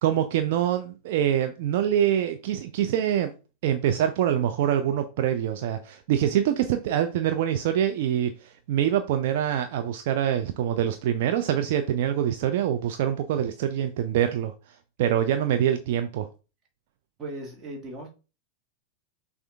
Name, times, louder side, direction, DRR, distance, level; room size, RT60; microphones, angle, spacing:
voice 1, 0.0-3.3 3.6-14.5 15.0-16.3, right 10 dB, 50° right, 0.4 m, -25 dB
voice 2, 17.2-18.1, right 1 dB, 25° right, 1.5 m, -37 dB
6.1 x 2.5 x 3.5 m
figure-of-eight pair, 90°, 0 cm